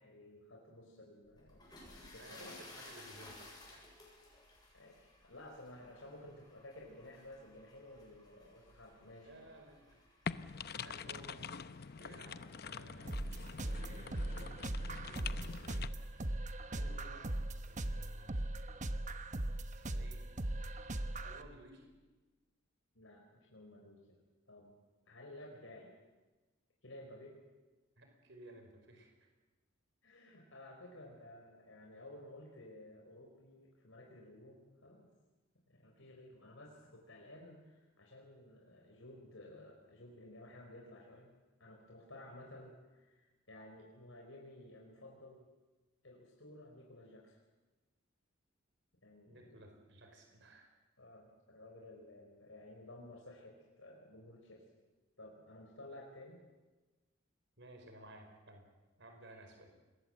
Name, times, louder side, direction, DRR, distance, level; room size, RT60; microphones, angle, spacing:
voice 1, 0.0-2.6 4.7-9.5 10.6-10.9 22.9-23.2 23.5-24.2 24.5-24.7 25.1-25.9 26.8-27.4 30.0-35.1 35.7-41.3 41.6-45.5 46.0-47.4 49.0-49.6 51.0-54.6 55.2-56.4, left 1 dB, 70° left, 0 dB, 4.6 m, -54 dB
sound 1, 1.3-16.3, left 2 dB, 20° left, 7.5 m, -59 dB
voice 2, 2.2-3.8 9.2-10.0 10.7-11.5 12.0-13.3 13.6-15.9 16.7-18.4 19.7-20.2 21.2-21.9 28.0-29.1 49.3-50.7 57.6-58.6 59.0-59.7, right 1 dB, 60° right, 3 dB, 4.7 m, -56 dB
sound 2, 10.3-15.9, left 6 dB, 50° left, 0.7 m, -45 dB
sound 3, 13.1-21.4, right 1 dB, 35° right, 1.1 m, -39 dB
27.0 x 21.5 x 7.8 m, 1.2 s
head